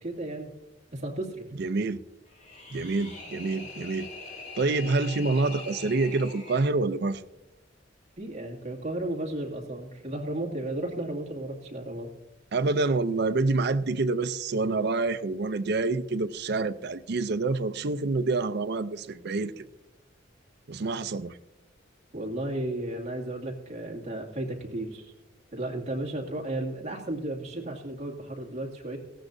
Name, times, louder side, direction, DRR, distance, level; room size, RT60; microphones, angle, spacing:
voice 1, 0.0-0.5 0.9-1.4 8.2-12.1 22.1-25.1 25.5-29.0, right 1 dB, 40° right, 1 dB, 2.3 m, -34 dB
voice 2, 1.6-2.0 2.7-4.1 4.6-7.2 12.5-19.6 20.7-21.4, right 3 dB, 60° right, 10 dB, 0.5 m, -27 dB
sound 1, 2.3-6.7, left 3 dB, 45° left, 4.6 m, -43 dB
18.0 x 15.5 x 2.6 m, 0.94 s
head